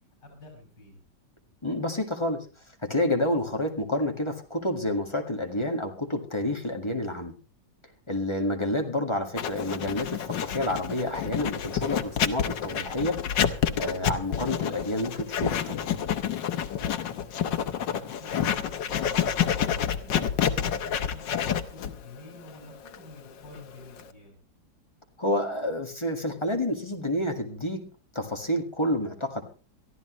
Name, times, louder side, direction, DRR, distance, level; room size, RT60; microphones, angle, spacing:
voice 1, 0.2-1.0 8.3-8.5 16.8-20.6 21.1-24.4, left 2 dB, 75° left, 2 dB, 6.8 m, -48 dB
voice 2, 1.6-2.4 2.8-7.3 8.1-13.2 13.7-15.7 25.2-27.8 28.1-29.4, left 1 dB, 15° left, 3 dB, 1.6 m, -29 dB
Writing, 9.4-24.1, left 9 dB, 90° left, 1.7 m, -29 dB
22.5 x 13.5 x 3.1 m, 0.36 s
omnidirectional pair, 1.9 m